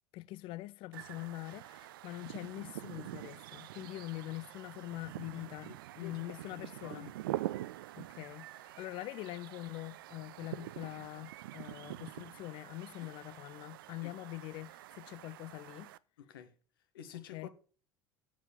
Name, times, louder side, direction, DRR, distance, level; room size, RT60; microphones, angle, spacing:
voice 1, 0.1-7.1 8.0-15.9 17.1-17.5, left 18 dB, 45° left, 0.4 m, -44 dB
sound 1, 0.9-16.0, right 15 dB, 65° right, 0.4 m, -45 dB
voice 2, 5.4-7.1 7.7-8.0 8.8-8.9 13.0-13.1 14.0-14.2 16.2-16.5 16.9-17.5, left 9 dB, 65° left, 1.2 m, -52 dB
7.6 x 7.3 x 7.1 m
figure-of-eight pair, 70°, 12 cm